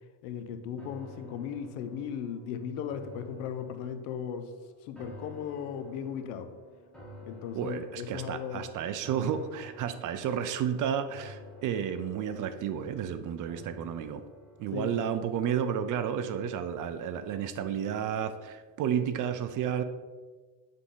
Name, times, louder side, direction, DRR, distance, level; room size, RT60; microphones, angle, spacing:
voice 1, 0.2-4.5 4.8-6.5 7.3-8.7 14.7-15.2, left 8 dB, 80° left, 9 dB, 0.8 m, -37 dB
sound 1, 0.8-16.1 16.5-16.6, equal, ahead, 1.4 m, -52 dB
voice 2, 7.5-14.2 14.6-19.8, right 8 dB, 40° right, 10 dB, 0.4 m, -32 dB
8.2 x 3.7 x 3.8 m, 1.4 s
supercardioid pair, 115°, 50 cm